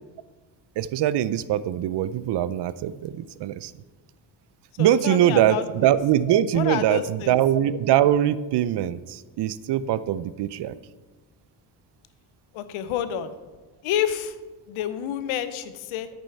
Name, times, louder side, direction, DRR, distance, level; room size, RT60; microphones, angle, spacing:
voice 1, 0.8-3.7 4.8-10.7, right 11 dB, 60° right, 16 dB, 0.5 m, -22 dB
voice 2, 4.8-5.9 6.5-7.4 12.5-13.3 13.8-14.3 14.7-16.1, left 10 dB, 85° left, 12 dB, 0.8 m, -29 dB
8.6 x 6.3 x 4.5 m, 1.3 s
cardioid pair, 80°, 48 cm